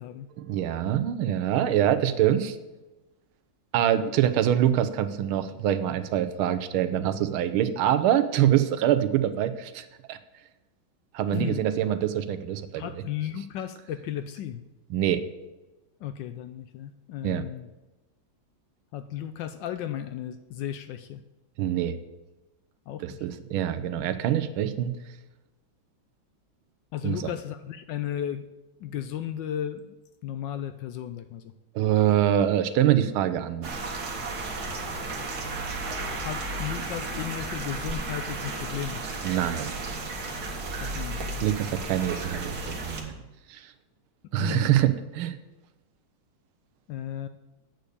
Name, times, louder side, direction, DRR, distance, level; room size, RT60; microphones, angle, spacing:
voice 1, 0.5-2.6 3.7-10.2 11.1-12.8 14.9-15.2 17.2-17.4 21.6-22.0 23.0-24.9 27.0-27.2 31.7-33.8 39.2-40.0 41.4-43.1 43.5-43.7 44.3-45.4, right 11 dB, 85° right, 11 dB, 1.6 m, -25 dB
voice 2, 11.3-11.7 12.8-14.6 16.0-17.7 18.9-21.2 22.9-23.3 26.9-28.4 28.8-29.9 30.2-31.5 36.2-39.0 40.8-41.8 44.4-44.7 46.9-47.3, left 10 dB, 75° left, 10 dB, 1.1 m, -35 dB
sound 1, 33.6-43.0, right 3 dB, 50° right, 1.9 m, -33 dB
7.9 x 6.6 x 8.3 m, 1.1 s
omnidirectional pair, 2.3 m